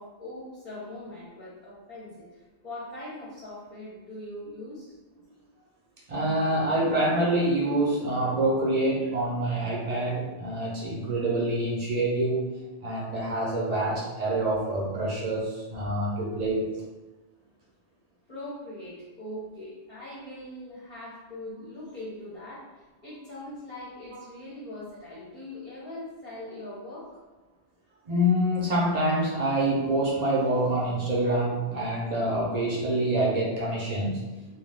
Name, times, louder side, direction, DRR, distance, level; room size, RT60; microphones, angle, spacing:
voice 1, 0.0-4.9 18.3-27.2, left 1 dB, 45° left, -8 dB, 0.8 m, -41 dB
voice 2, 6.1-12.5 12.8-16.7 28.1-34.3, right 1 dB, 40° right, -5 dB, 0.7 m, -26 dB
2.2 x 2.2 x 3.4 m, 1.2 s
omnidirectional pair, 1.1 m